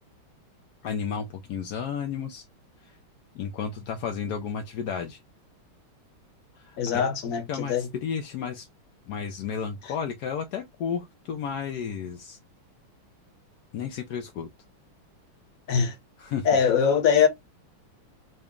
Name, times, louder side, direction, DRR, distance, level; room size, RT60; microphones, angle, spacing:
voice 1, 0.8-2.4 2.8-2.9 3.3-5.2 6.6-7.0 7.5-8.7 9.1-12.4 13.7-14.5 16.2-16.5, left 7 dB, 70° left, 0.9 m, -32 dB
voice 2, 6.8-7.9 15.7-15.9 16.4-17.3, left 7 dB, 50° left, 1.1 m, -22 dB
4.0 x 2.2 x 3.6 m
omnidirectional pair, 2.3 m